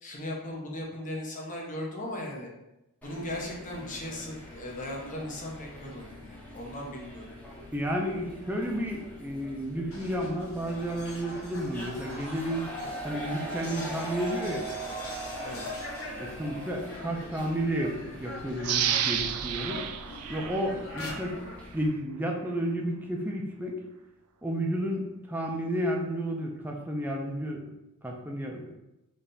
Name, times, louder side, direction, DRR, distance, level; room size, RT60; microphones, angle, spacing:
voice 1, 0.0-2.5 3.0-7.2 15.4-15.6 20.7-20.9, left 1 dB, 35° left, -2 dB, 1.0 m, -37 dB
sound 1, 3.0-21.9, right 1 dB, 5° left, 0.9 m, -42 dB
voice 2, 7.7-12.6 13.0-14.7 16.2-19.8 20.3-21.4 21.7-23.8 24.4-27.6 28.0-28.7, equal, 10° right, 0 dB, 0.6 m, -32 dB
sound 2, 9.8-19.2 19.5-21.6, left 1 dB, 65° left, 1.3 m, -43 dB
sound 3, 18.6-21.3 21.8-21.9, right 9 dB, 75° right, 0.4 m, -31 dB
3.6 x 3.3 x 4.1 m, 0.92 s
head